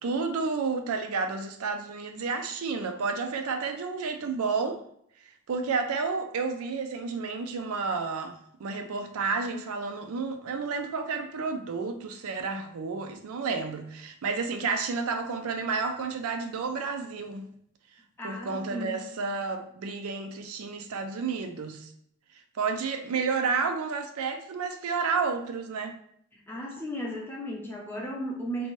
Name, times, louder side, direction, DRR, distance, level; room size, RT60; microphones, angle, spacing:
voice 1, 0.0-4.8 5.2-17.5 18.2-21.9 22.6-25.9, right 4 dB, 80° right, 6 dB, 0.4 m, -31 dB
voice 2, 18.2-19.0 26.3-28.7, equal, 10° left, -2 dB, 0.5 m, -35 dB
2.7 x 2.2 x 3.0 m, 0.69 s
head